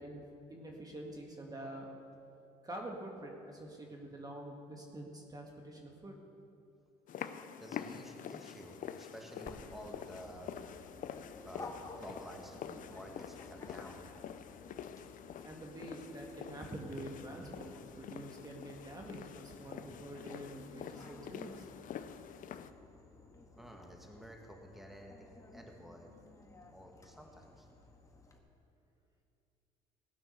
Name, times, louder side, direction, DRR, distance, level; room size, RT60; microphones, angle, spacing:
voice 1, 0.0-1.9 2.6-6.2 15.4-21.6, right 1 dB, 20° right, 0 dB, 1.8 m, -46 dB
sound 1, 7.1-22.7, left 8 dB, 55° left, 0.6 m, -47 dB
voice 2, 7.6-10.5 11.4-14.0 23.6-26.1 26.7-27.7, equal, ahead, 1 dB, 1.9 m, -51 dB
Dog, 9.4-28.4, left 2 dB, 20° left, 1.7 m, -55 dB
17.5 x 6.1 x 6.6 m, 2.6 s
supercardioid pair, 75°, 17 cm